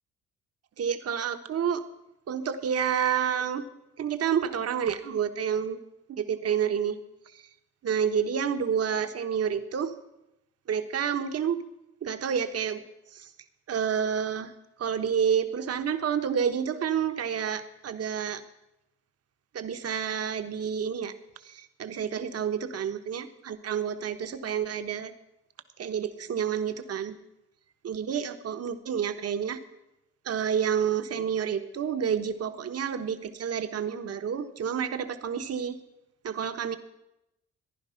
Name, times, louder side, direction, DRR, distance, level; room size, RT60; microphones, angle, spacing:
voice 1, 0.8-1.8 2.3-3.7 4.0-5.8 6.1-7.0 7.3-7.5 7.8-10.0 10.7-11.6 12.0-13.3 13.7-14.5 14.8-18.4 19.5-25.1 25.8-27.2 27.8-29.6 30.2-35.8 36.2-36.8, right 7 dB, 55° right, 9 dB, 1.3 m, -29 dB
15.0 x 10.5 x 5.8 m, 0.89 s
cardioid pair, 90°, 30 cm